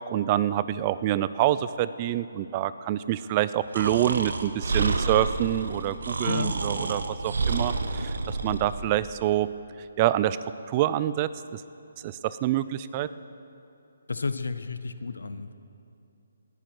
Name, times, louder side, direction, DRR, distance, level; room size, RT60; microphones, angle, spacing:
voice 1, 0.0-9.5 10.0-10.4 10.7-11.6 12.0-13.1, right 13 dB, 30° right, 15 dB, 0.4 m, -26 dB
Breathing, 3.7-8.8, right 3 dB, 70° right, 1.0 m, -29 dB
voice 2, 6.2-6.6 14.1-15.5, left 4 dB, 75° left, 12 dB, 0.7 m, -31 dB
18.5 x 10.5 x 4.7 m, 2.7 s
figure-of-eight pair, 150°, 0 cm